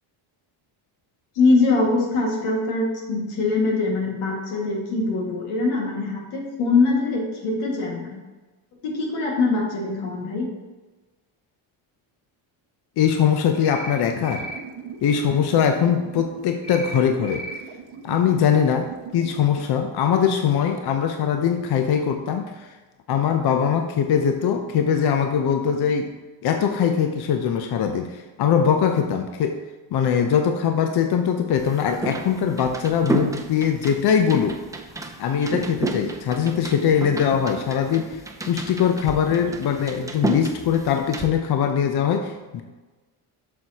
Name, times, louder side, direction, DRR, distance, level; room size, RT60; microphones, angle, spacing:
voice 1, 1.4-8.2 8.8-10.5, left 3 dB, 90° left, -2 dB, 2.0 m, -23 dB
voice 2, 13.0-14.5 15.0-17.4 18.0-22.7 23.1-26.1 26.4-29.6 29.9-34.6 35.2-42.6, left 7 dB, 55° left, 5 dB, 0.7 m, -22 dB
sound 1, 13.6-14.0 14.2-14.6 16.6-17.0 17.2-17.6, equal, 15° left, 1.9 m, -34 dB
sound 2, 14.5-19.6, right 7 dB, 60° right, 1.0 m, -40 dB
sound 3, 31.6-41.3, right 2 dB, 5° right, 0.6 m, -31 dB
7.6 x 6.4 x 2.9 m, 1.2 s
cardioid pair, 100°, 48 cm